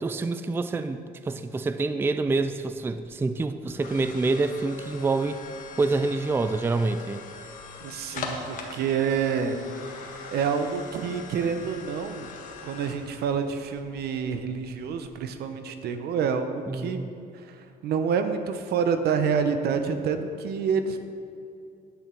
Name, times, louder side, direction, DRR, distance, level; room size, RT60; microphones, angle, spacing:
voice 1, 0.0-5.4 5.8-7.2 16.7-17.1, right 3 dB, 15° right, 11 dB, 0.4 m, -27 dB
sound 1, 2.7-15.3, left 3 dB, 50° left, 1.6 m, -42 dB
voice 2, 7.8-9.6 10.3-12.3 12.6-17.0 17.5-21.0, right 6 dB, 70° right, 8 dB, 0.9 m, -27 dB
10.5 x 9.0 x 4.5 m, 2.5 s
cardioid pair, 110°, 17 cm